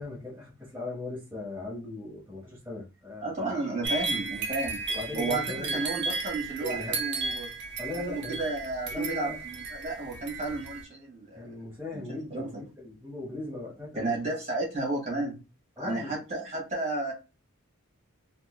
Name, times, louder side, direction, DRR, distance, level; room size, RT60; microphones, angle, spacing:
voice 1, 0.0-3.5 4.9-5.8 6.6-7.0 7.8-8.4 8.9-9.4 11.3-14.1 15.8-16.2, left 2 dB, 10° right, -7 dB, 1.2 m, -38 dB
voice 2, 3.2-4.8 5.1-7.5 8.1-11.4 11.9-12.5 14.0-15.3 15.8-17.1, right 2 dB, 35° right, -3 dB, 1.8 m, -32 dB
sound 1, 3.8-10.8, right 4 dB, 50° right, 0.7 m, -34 dB
4.4 x 2.1 x 2.2 m, 0.29 s
head